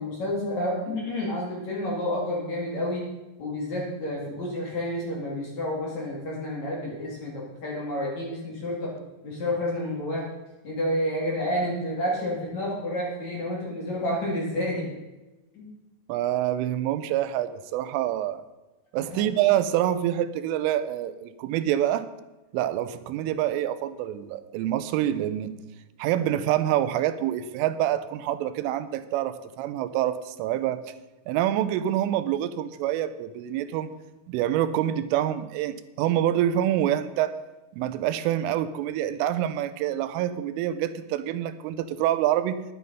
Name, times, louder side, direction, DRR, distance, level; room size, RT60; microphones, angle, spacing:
voice 1, 0.0-3.1 3.4-8.9 9.2-10.2 10.6-14.9 15.5-15.7 19.1-19.2, left 1 dB, 45° left, -3 dB, 3.1 m, -30 dB
voice 2, 16.1-18.4 18.9-22.1 22.5-25.5 26.0-30.8 31.3-33.9 34.3-37.4 37.7-42.6, right 12 dB, 90° right, 12 dB, 3.2 m, -26 dB
10.5 x 9.6 x 5.4 m, 1.1 s
omnidirectional pair, 5.6 m